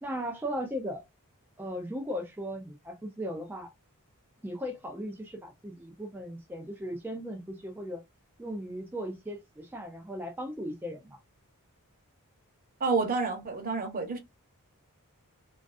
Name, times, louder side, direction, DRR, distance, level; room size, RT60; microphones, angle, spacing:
voice 1, 0.0-1.0 1.6-3.7 4.4-8.0 8.4-11.2, equal, 10° right, 0.4 m, -37 dB
voice 2, 12.8-14.2, right 4 dB, 40° right, 0.7 m, -29 dB
2.4 x 2.3 x 2.4 m
head